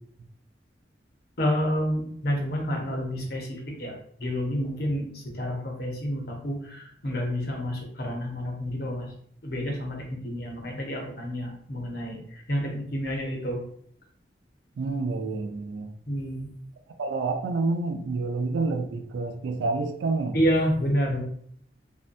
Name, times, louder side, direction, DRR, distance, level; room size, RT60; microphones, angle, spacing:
voice 1, 1.4-3.9 4.2-9.1 9.4-13.6 16.1-16.5 20.3-21.2, equal, 55° left, 0 dB, 0.7 m, -29 dB
voice 2, 14.8-15.9 17.0-20.4, right 3 dB, 75° right, 6 dB, 0.3 m, -28 dB
2.6 x 2.1 x 2.5 m, 0.63 s
head